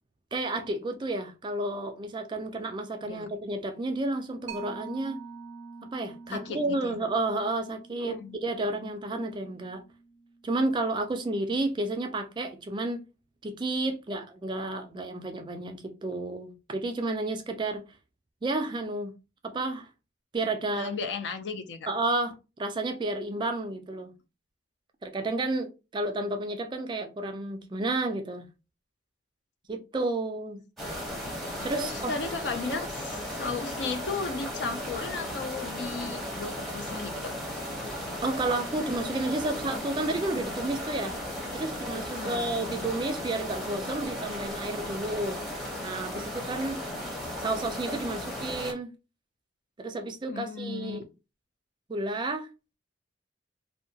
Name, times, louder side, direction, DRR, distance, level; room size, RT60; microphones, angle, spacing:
voice 1, 0.3-5.2 5.9-9.8 10.4-13.0 13.4-17.8 18.4-19.1 19.4-19.9 20.3-20.9 21.9-24.1 25.0-28.5 29.7-30.6 31.6-32.1 38.2-41.1 41.5-45.4 45.8-46.8 47.4-48.9 49.8-51.0 51.9-52.5, right 2 dB, 25° right, 0.3 m, -31 dB
Mallet percussion, 4.5-11.5, right 5 dB, 80° right, 0.5 m, -47 dB
voice 2, 6.3-7.0 8.0-8.4 8.8-8.9 20.8-21.9 31.7-37.3 42.2-42.9 50.3-51.0, left 4 dB, 65° left, 0.5 m, -35 dB
sound 1, 30.8-48.7, left 1 dB, ahead, 0.7 m, -36 dB
2.7 x 2.1 x 2.7 m
head